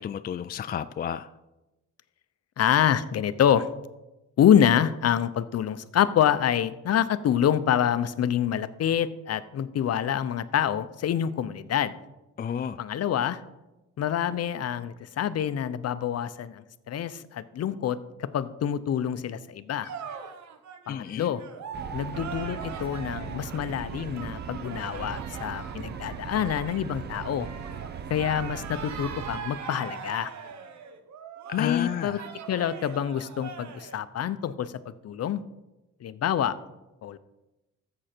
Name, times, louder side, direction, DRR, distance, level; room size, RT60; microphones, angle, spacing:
voice 1, 0.0-1.3 12.4-12.8 20.9-21.3 31.5-32.3, left 8 dB, 30° left, 12 dB, 0.4 m, -32 dB
voice 2, 2.6-3.7 4.4-12.0 12.8-13.4 14.0-19.9 20.9-21.4 21.9-27.5 28.1-30.3 31.5-32.2 32.5-35.4 36.0-36.6 37.0-37.2, left 9 dB, 55° left, 14 dB, 0.7 m, -26 dB
sound 1, 19.8-34.0, right 6 dB, 65° right, 1.2 m, -41 dB
sound 2, 21.7-29.4, right 7 dB, 35° right, 0.5 m, -39 dB
13.0 x 7.7 x 4.4 m, 1.0 s
cardioid pair, 90°, 30 cm